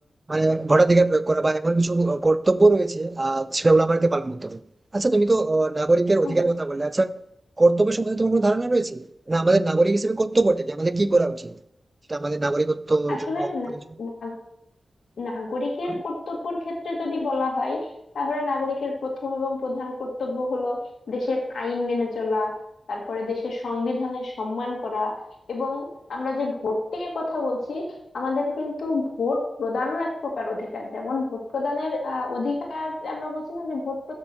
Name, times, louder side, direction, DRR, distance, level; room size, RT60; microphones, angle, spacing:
voice 1, 0.3-4.6 4.9-7.2 7.6-11.6 12.1-13.5, right 2 dB, 35° right, 0.6 m, -21 dB
voice 2, 13.1-14.4 15.2-17.9 18.1-20.8 21.1-22.5 22.9-25.2 25.5-27.9 28.1-34.1, left 3 dB, 80° left, 1.9 m, -28 dB
6.7 x 5.9 x 6.0 m
cardioid pair, 40°, 0 cm